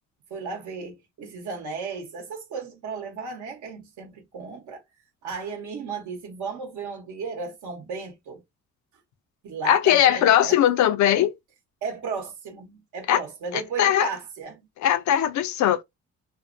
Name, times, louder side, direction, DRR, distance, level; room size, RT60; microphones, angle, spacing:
voice 1, 0.3-4.8 5.2-8.4 9.4-10.6 11.8-14.6, right 5 dB, 75° right, 0.8 m, -35 dB
voice 2, 9.6-11.3 13.1-13.2 13.8-14.1 14.8-15.8, left 11 dB, 70° left, 0.5 m, -19 dB
2.5 x 2.4 x 2.4 m
cardioid pair, 90°, 30 cm